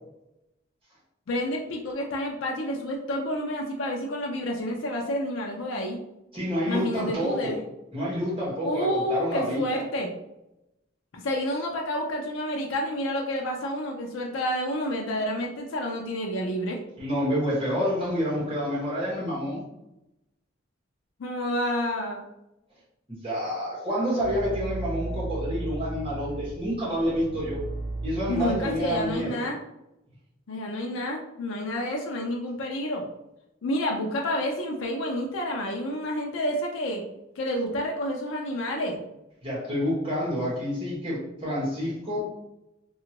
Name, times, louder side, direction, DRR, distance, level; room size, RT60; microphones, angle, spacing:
voice 1, 1.3-6.0 6.7-7.6 8.6-10.1 11.1-16.8 21.2-22.2 25.1-25.2 28.3-29.6 30.5-33.0 33.6-37.0 37.4-39.0, left 1 dB, 80° left, 1 dB, 0.5 m, -29 dB
voice 2, 6.3-7.6 7.9-9.8 17.0-19.6 23.1-27.6 28.0-29.4 39.4-42.3, equal, 30° right, -6 dB, 1.2 m, -28 dB
sound 1, 24.2-29.3, right 2 dB, 65° right, 0.7 m, -35 dB
2.8 x 2.3 x 2.8 m, 0.90 s
head